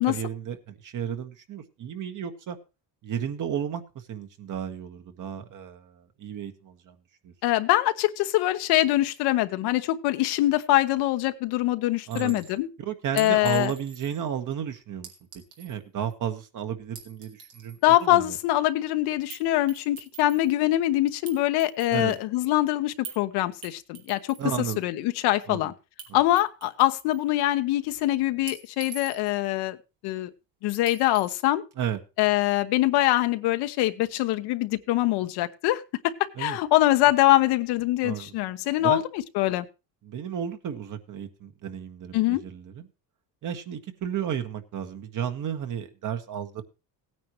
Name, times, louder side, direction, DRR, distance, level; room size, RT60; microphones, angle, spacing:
voice 1, 0.0-2.6 3.0-7.0 7.2-7.3 12.1-12.4 12.8-15.1 15.6-18.4 21.9-22.2 24.4-24.8 25.5-25.7 26.1-26.2 31.8-32.0 36.3-36.6 38.0-38.3 38.8-39.0 40.0-42.9 43.4-46.6, right 8 dB, 50° right, 1.6 m, -33 dB
voice 2, 7.4-12.7 13.2-13.7 17.8-24.4 24.8-25.7 26.1-29.8 30.0-30.3 30.6-31.6 32.2-36.1 36.4-39.0 39.3-39.7 42.1-42.4, left 15 dB, 75° left, 1.1 m, -23 dB
Chink clink, 12.1-12.5 13.2-14.3 15.0-15.8 16.8-17.8 19.3-19.4 19.7-20.5 21.3-22.2 23.0-23.2 23.6-24.5 26.0-26.1 26.4-27.2 28.5-29.5 30.9-31.4, right 6 dB, 85° right, 2.6 m, -44 dB
17.0 x 9.4 x 3.1 m
supercardioid pair, 100°, 40 cm